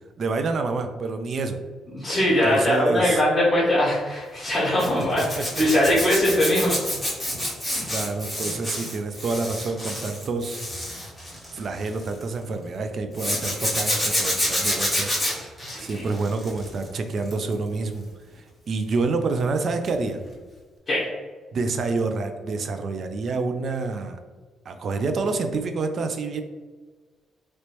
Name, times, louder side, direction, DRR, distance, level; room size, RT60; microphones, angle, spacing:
voice 1, 0.2-1.6 2.4-3.2 5.0-5.6 7.9-10.6 11.5-18.1 18.3-20.2 21.5-24.2 24.7-26.4, right 3 dB, 55° right, 7 dB, 0.3 m, -28 dB
voice 2, 1.9-6.8 7.7-7.9 15.7-16.0 20.9-21.1, left 1 dB, 30° left, -7 dB, 1.3 m, -21 dB
Zipper (clothing), 4.8-12.2 13.1-16.8 17.2-17.5 19.8-20.0 20.3-20.4, left 1 dB, 5° left, 1.3 m, -28 dB
3.0 x 3.0 x 3.0 m, 1.4 s
cardioid pair, 90°, 0 cm